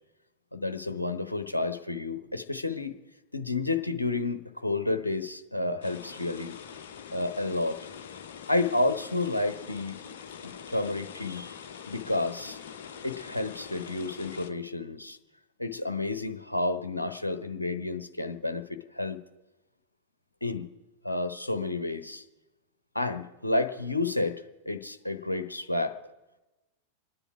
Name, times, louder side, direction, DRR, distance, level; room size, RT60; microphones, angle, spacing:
voice 1, 0.5-3.0 3.3-6.5 7.1-7.8 8.5-10.0 10.4-11.6 11.9-12.6 13.0-15.2 15.6-19.2 20.4-20.7 21.0-22.2 22.9-26.0, left 2 dB, 85° left, 8 dB, 1.0 m, -30 dB
sound 1, 5.8-14.5, left 7 dB, 55° left, 1.0 m, -44 dB
26.5 x 10.0 x 4.8 m, 1.1 s
figure-of-eight pair, 90°, 0 cm